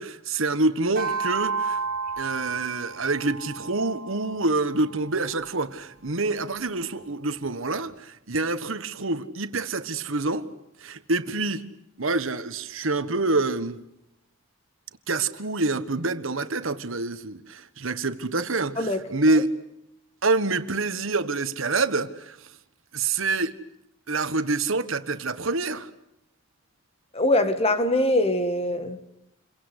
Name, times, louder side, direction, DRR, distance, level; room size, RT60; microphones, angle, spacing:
voice 1, 0.0-1.8 2.2-10.5 10.8-11.7 12.0-13.8 15.1-19.5 20.2-22.4 22.9-23.6 24.1-25.9, right 3 dB, 70° right, 1.5 m, -26 dB
sound 1, 1.0-5.5, right 4 dB, 45° right, 3.0 m, -32 dB
voice 2, 27.1-29.0, left 1 dB, 30° left, 2.0 m, -23 dB
29.5 x 23.5 x 8.2 m
head